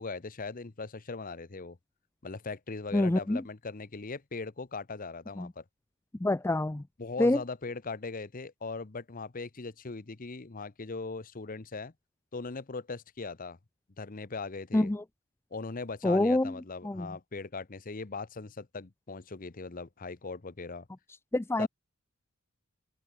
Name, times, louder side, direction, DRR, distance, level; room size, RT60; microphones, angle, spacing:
voice 1, 0.0-1.8 2.2-5.6 7.0-11.9 12.3-13.6 14.0-14.9 15.5-20.9 21.6-21.7, left 4 dB, 40° left, 0.8 m, -39 dB
voice 2, 2.9-3.4 5.4-5.5 6.2-6.8 7.2-7.4 14.7-15.0 16.0-16.5 16.8-17.1 21.3-21.7, left 1 dB, 10° left, 0.4 m, -26 dB
open air
head